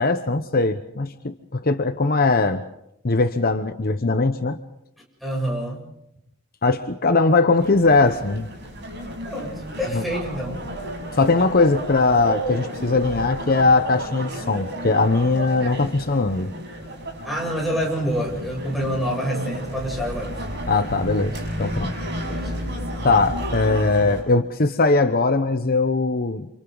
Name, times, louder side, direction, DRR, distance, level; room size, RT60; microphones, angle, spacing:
voice 1, 0.0-2.6 3.0-4.6 6.6-8.5 9.9-10.0 11.1-16.5 20.7-21.9 23.0-26.5, left 3 dB, 50° left, 9 dB, 1.0 m, -20 dB
voice 2, 5.2-5.8 9.2-10.5 17.2-20.5 22.3-22.7, equal, ahead, -2 dB, 7.7 m, -27 dB
sound 1, 7.6-24.2, equal, 55° right, 6.8 m, -32 dB
29.5 x 27.5 x 4.0 m, 0.80 s
head